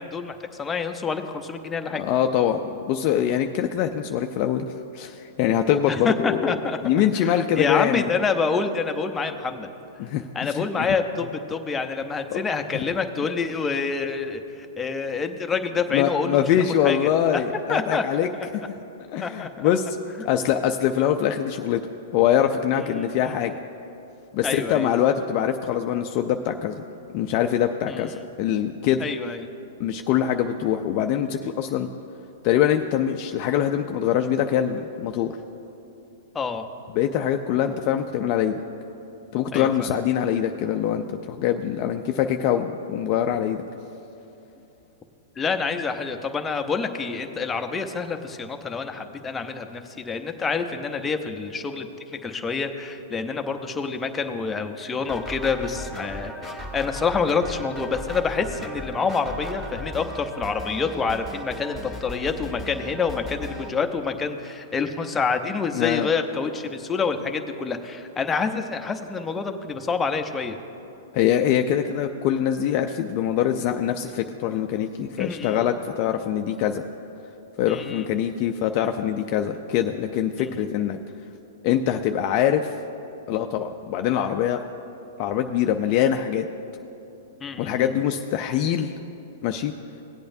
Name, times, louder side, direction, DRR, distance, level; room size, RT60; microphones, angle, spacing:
voice 1, 0.0-2.0 5.9-9.7 10.3-16.4 16.8-17.0 17.3-17.4 17.7-18.0 19.2-19.7 22.8-23.1 24.4-24.9 27.9-28.0 29.0-29.5 36.3-36.7 39.5-39.9 45.4-70.6 75.2-75.7 77.7-78.1 80.4-80.7 87.4-88.0, left 5 dB, 15° left, 5 dB, 0.8 m, -27 dB
voice 2, 1.9-6.5 6.8-8.1 10.0-10.9 12.3-12.4 12.7-12.8 15.9-18.3 19.1-20.0 20.2-21.8 22.1-23.5 24.3-26.7 27.1-29.1 29.8-31.9 32.4-35.3 37.0-38.6 39.3-43.6 65.7-66.1 71.1-76.8 77.6-81.0 81.6-82.8 83.3-84.6 85.2-86.5 87.6-88.9 89.4-89.7, left 10 dB, 45° left, 5 dB, 0.5 m, -23 dB
sound 1, 55.1-63.7, left 1 dB, 10° right, 1.9 m, -36 dB
18.0 x 8.5 x 2.7 m, 2.9 s
hypercardioid pair, 125°, 0 cm